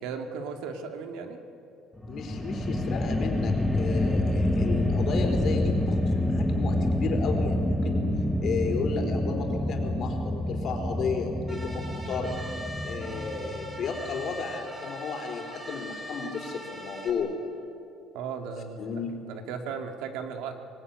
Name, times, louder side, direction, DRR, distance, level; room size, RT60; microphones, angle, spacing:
voice 1, 0.0-1.4 18.1-18.8 19.3-20.6, right 6 dB, 75° right, 5 dB, 2.3 m, -36 dB
sound 1, 2.0-14.3, left 1 dB, 5° left, 0.9 m, -27 dB
voice 2, 2.1-8.1 8.4-12.4 12.8-17.4 18.8-19.2, left 5 dB, 40° left, 3 dB, 4.0 m, -33 dB
sound 2, 11.5-17.1, equal, 10° right, 3.8 m, -41 dB
24.5 x 20.0 x 9.7 m, 2.6 s
cardioid pair, 165°, 0 cm